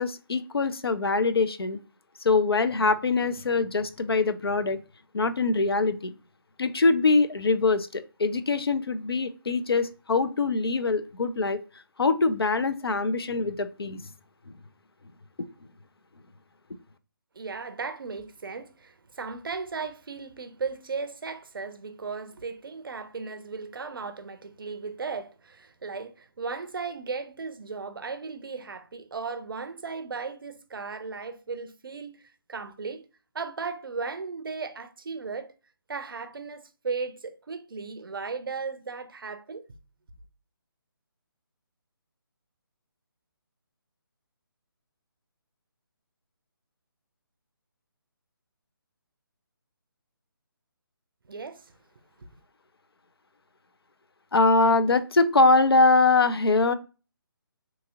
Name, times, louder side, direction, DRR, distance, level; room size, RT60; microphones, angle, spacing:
voice 1, 0.0-1.8 2.2-4.8 5.1-6.1 6.6-11.6 12.0-14.0 54.3-56.7, left 3 dB, 85° left, 0.4 m, -23 dB
voice 2, 17.3-32.2 32.5-33.1 33.3-35.5 35.9-39.7 51.3-51.7 52.2-52.3, right 4 dB, 70° right, 0.4 m, -36 dB
2.8 x 2.7 x 2.3 m
figure-of-eight pair, 150°, 12 cm